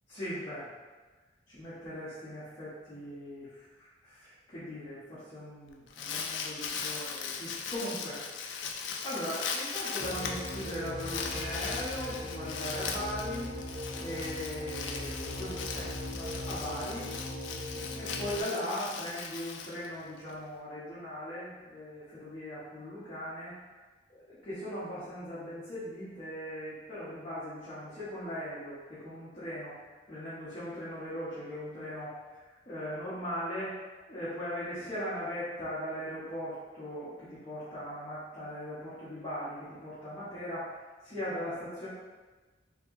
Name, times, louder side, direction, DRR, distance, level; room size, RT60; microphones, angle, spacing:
voice 1, 0.1-0.7 1.5-8.4 9.0-13.5 13.9-17.1 17.9-23.5 24.1-29.7 30.1-32.1 32.7-33.7 34.1-40.7 41.0-41.9, equal, 30° left, -13 dB, 1.1 m, -39 dB
Crumpling crinkling, 5.7-20.3, left 6 dB, 70° left, 0.4 m, -39 dB
sound 1, 10.0-18.4, left 1 dB, 35° right, 0.7 m, -39 dB
4.4 x 2.9 x 2.6 m, 1.3 s
head